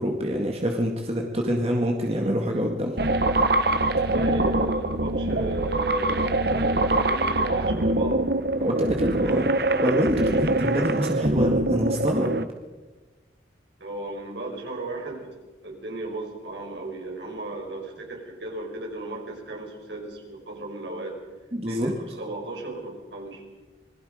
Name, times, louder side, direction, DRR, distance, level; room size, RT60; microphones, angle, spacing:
voice 1, 0.0-3.0 8.6-9.5 9.8-12.3 21.5-21.9, equal, 35° right, 1 dB, 2.0 m, -25 dB
sound 1, 3.0-12.4, right 2 dB, 55° right, 0.9 m, -24 dB
voice 2, 3.9-8.2 8.5-8.7 13.8-15.3 15.6-21.2 21.6-23.4, right 2 dB, 75° right, 1 dB, 5.4 m, -35 dB
27.0 x 21.5 x 5.1 m, 1.3 s
head